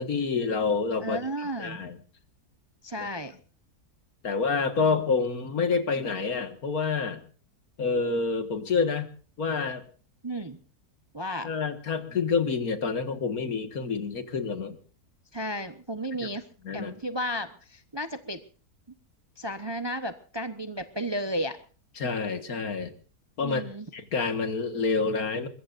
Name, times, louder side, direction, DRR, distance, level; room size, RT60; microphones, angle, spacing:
voice 1, 0.0-1.2 1.6-2.0 3.0-3.1 4.2-7.2 7.8-9.1 9.4-9.8 11.4-14.8 16.6-16.9 22.0-22.9 23.4-23.6 23.9-25.5, left 4 dB, 65° left, 9 dB, 2.2 m, -28 dB
voice 2, 1.0-1.8 2.8-3.3 4.8-4.9 10.2-10.6 11.1-11.5 15.3-16.5 16.7-18.4 19.4-21.6 23.4-23.9, equal, 20° right, 9 dB, 0.8 m, -33 dB
23.5 x 21.5 x 2.6 m, 0.38 s
omnidirectional pair, 1.7 m